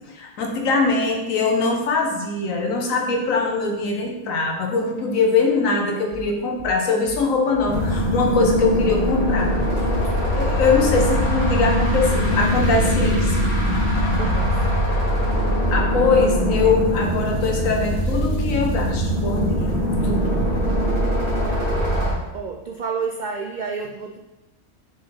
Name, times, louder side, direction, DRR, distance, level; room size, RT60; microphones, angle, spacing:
voice 1, 0.1-13.5 15.7-19.8 20.0-20.4, left 4 dB, 90° left, 2 dB, 1.4 m, -22 dB
sound 1, 6.1-6.7 7.1-7.7 8.0-8.7 9.0-9.7 9.9-10.6 10.9-11.6 11.8-12.5 12.8-13.5 13.7-14.4 14.7-15.3 15.6-16.3 16.6-17.2 17.5-18.2 18.5-18.6 19.0-19.6 19.9-20.1 20.4-20.9, right 5 dB, 60° right, 1.0 m, -35 dB
sound 2, 7.7-22.1, equal, 30° left, 2.3 m, -21 dB
voice 2, 14.0-14.5 21.7-21.9 22.3-24.2, right 5 dB, 75° right, 2 dB, 0.4 m, -30 dB
6.4 x 4.2 x 4.0 m, 1.0 s
omnidirectional pair, 1.4 m